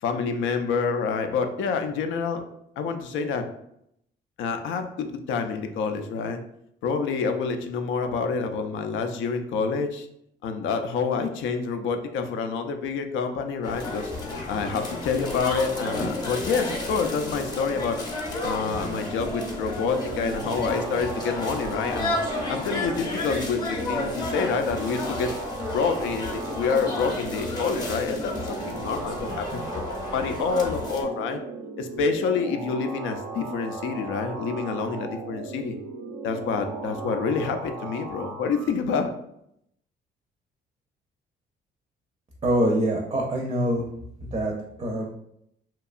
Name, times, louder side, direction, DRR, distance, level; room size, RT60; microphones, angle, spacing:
voice 1, 0.0-2.4 2.8-3.5 4.4-6.4 6.8-10.1 10.4-14.1 14.5-18.0 18.4-22.2 22.5-25.3 25.7-31.4 31.8-35.8 36.2-39.1, left 5 dB, 80° left, 6 dB, 0.4 m, -27 dB
sound 1, 13.6-31.0, left 2 dB, 20° left, 0.7 m, -32 dB
sound 2, 18.8-38.8, right 3 dB, 85° right, 0.5 m, -37 dB
voice 2, 42.4-43.9 44.2-44.5 44.8-45.1, right 1 dB, 25° right, 0 dB, 0.5 m, -24 dB
2.8 x 2.2 x 2.3 m, 0.75 s
cardioid pair, 90°, 20 cm